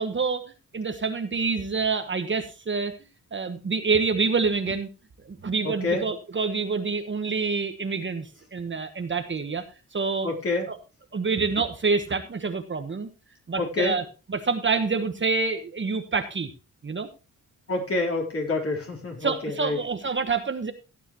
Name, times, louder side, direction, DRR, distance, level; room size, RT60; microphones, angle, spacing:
voice 1, 0.0-2.9 3.3-4.9 5.2-9.6 9.9-10.3 10.7-10.8 11.1-13.1 13.5-14.0 14.3-16.5 16.8-17.1 19.2-20.7, right 4 dB, 35° right, 7 dB, 1.2 m, -27 dB
voice 2, 5.6-6.0 10.2-10.7 13.6-14.0 17.7-19.8, left 2 dB, 40° left, 0 dB, 4.0 m, -27 dB
16.5 x 9.2 x 3.0 m, 0.31 s
wide cardioid pair, 115°, 34 cm